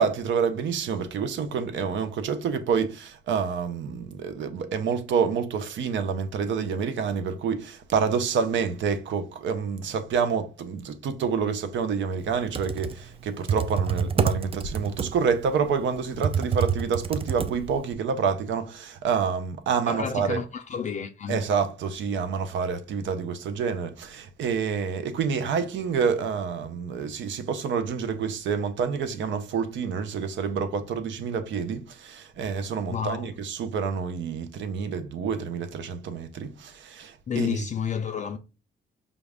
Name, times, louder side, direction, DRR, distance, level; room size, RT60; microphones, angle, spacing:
voice 1, 0.0-20.4 21.3-37.6, right 6 dB, 70° right, 0.7 m, -28 dB
Computer keyboard, 12.3-17.9, right 6 dB, 30° right, 0.4 m, -28 dB
voice 2, 19.9-21.4 32.9-33.3 37.3-38.4, left 7 dB, 40° left, 0.4 m, -30 dB
5.2 x 2.3 x 3.4 m
cardioid pair, 90°, 20 cm